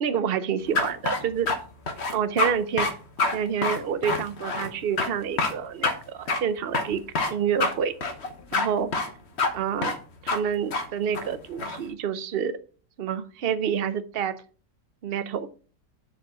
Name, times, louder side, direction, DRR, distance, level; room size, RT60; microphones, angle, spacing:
voice 1, 0.0-1.5 2.1-2.9 3.3-7.0 7.3-7.9 8.5-8.9 9.5-10.0 10.2-12.6 13.0-14.4 15.0-15.5, right 7 dB, 65° right, 11 dB, 0.5 m, -28 dB
sound 1, 0.7-1.6 1.9-2.5 2.8-2.9 3.2-3.4 3.6-4.7 5.0-5.1 5.4-5.5 5.8-5.9 6.3-6.4 6.7-7.3 7.6-7.7 8.0-8.7 8.9-9.1 9.4-9.5 9.8-10.0 10.3-10.4 10.7-10.8 11.1-11.8, left 3 dB, 40° left, 1.3 m, -26 dB
6.9 x 5.0 x 6.7 m, 0.39 s
omnidirectional pair, 1.9 m